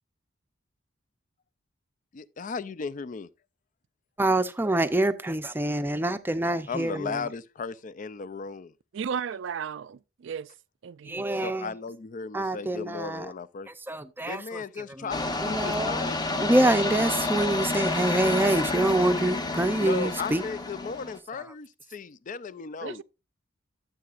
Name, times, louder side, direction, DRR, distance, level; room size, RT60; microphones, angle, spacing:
voice 1, 2.1-3.3 6.7-8.7 11.4-13.7 14.2-16.5 19.8-23.0, left 5 dB, 40° left, 0.4 m, -36 dB
voice 2, 4.2-7.3 11.0-11.7 12.3-13.3 13.7-14.6 15.0-16.1 16.4-20.4, right 1 dB, 10° right, 0.5 m, -26 dB
voice 3, 8.9-10.5 10.8-11.3 22.8-23.0, right 7 dB, 65° right, 0.4 m, -34 dB
sound 1, 15.1-21.2, left 2 dB, 20° left, 0.9 m, -29 dB
12.5 x 7.6 x 2.5 m
head